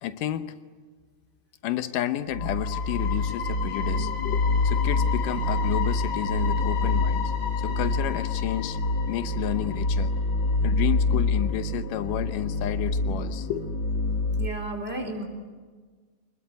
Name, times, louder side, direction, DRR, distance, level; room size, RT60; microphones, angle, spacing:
voice 1, 0.0-0.5 1.6-8.8 9.1-10.1 10.6-13.7, left 12 dB, 85° left, 10 dB, 2.6 m, -31 dB
sound 1, 2.3-14.5, left 3 dB, 40° left, 2.5 m, -26 dB
voice 2, 14.3-15.2, right 1 dB, 20° right, 2 dB, 4.2 m, -33 dB
25.5 x 21.0 x 9.6 m, 1.5 s
omnidirectional pair, 3.6 m